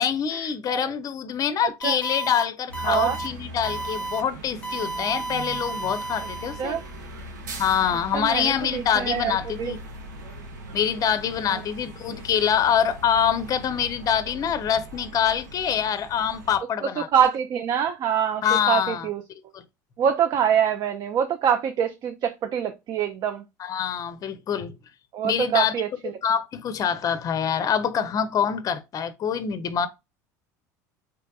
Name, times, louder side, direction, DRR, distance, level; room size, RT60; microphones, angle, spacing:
voice 1, 0.0-6.8 7.6-9.8 10.7-17.1 18.4-19.6 23.6-24.7 25.2-25.7 26.0-29.9, left 8 dB, 40° left, 0.5 m, -25 dB
sound 1, 1.8-2.4 2.7-3.3 3.6-4.2 4.6-6.9, right 3 dB, 15° left, 0.9 m, -33 dB
sound 2, 2.7-16.6, right 1 dB, 80° right, 0.9 m, -40 dB
voice 2, 2.8-3.2 6.6-6.8 8.1-9.7 11.5-11.6 17.1-19.2 20.0-23.4 25.1-26.1, right 8 dB, 45° right, 0.4 m, -24 dB
3.4 x 2.9 x 2.2 m
hypercardioid pair, 75°, 10 cm